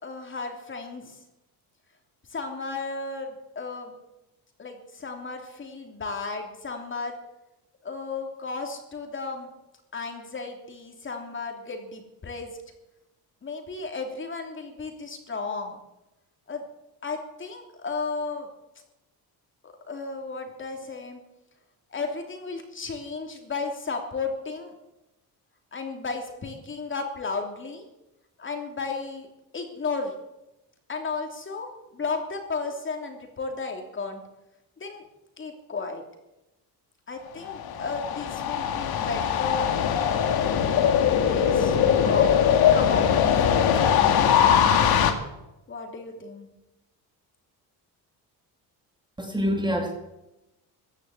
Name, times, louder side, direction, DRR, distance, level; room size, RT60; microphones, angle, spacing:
voice 1, 0.0-1.2 2.3-3.9 4.6-7.2 7.8-9.5 9.9-12.6 13.4-15.8 16.5-16.6 17.0-18.5 19.6-21.2 21.9-24.7 25.7-27.9 28.4-29.3 29.5-30.1 30.9-34.2 34.8-35.0 35.4-36.0 37.1-39.8 41.1-42.3 42.7-43.1 43.4-44.5 45.7-46.5, left 4 dB, 30° left, 3 dB, 3.0 m, -34 dB
sound 1, 37.4-45.1, left 8 dB, 65° left, 2.0 m, -21 dB
voice 2, 49.2-49.9, equal, 10° right, 2 dB, 2.2 m, -26 dB
15.5 x 9.8 x 8.4 m, 0.94 s
cardioid pair, 115°, 39 cm